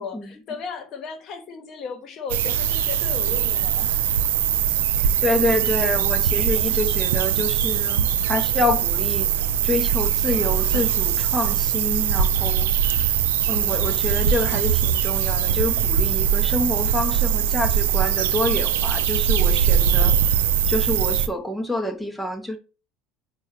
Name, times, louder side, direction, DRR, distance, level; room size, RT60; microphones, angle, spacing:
voice 1, 0.0-4.0, left 5 dB, 45° left, 0.8 m, -35 dB
sound 1, 2.3-21.3, right 8 dB, 70° right, 0.3 m, -21 dB
voice 2, 5.2-9.3 9.6-12.7 13.5-20.1 20.7-22.6, left 2 dB, ahead, 0.6 m, -27 dB
4.6 x 2.2 x 4.2 m
figure-of-eight pair, 70°, 0 cm